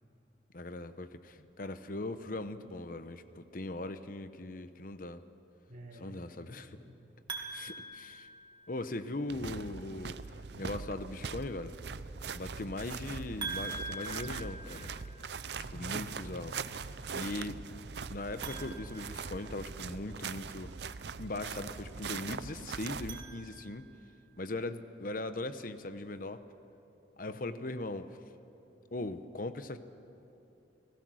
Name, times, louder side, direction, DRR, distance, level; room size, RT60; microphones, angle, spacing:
voice 1, 0.5-5.2 6.0-6.7 7.5-8.3 8.7-11.8 12.3-14.9 15.7-16.5 17.1-17.6 18.1-20.7 21.2-23.9 24.4-26.4 27.2-28.1 28.9-29.8, left 2 dB, 50° left, 11 dB, 0.9 m, -39 dB
voice 2, 5.7-7.0 7.5-7.7 15.7-16.9 27.3-27.8, right 1 dB, 45° right, -4 dB, 3.3 m, -51 dB
sound 1, 7.3-9.0 13.4-15.4 18.3-19.9 22.8-24.0, right 3 dB, 25° right, 2.2 m, -44 dB
sound 2, 9.3-23.2, right 5 dB, 70° right, 0.6 m, -41 dB
30.0 x 18.0 x 6.3 m, 3.0 s
head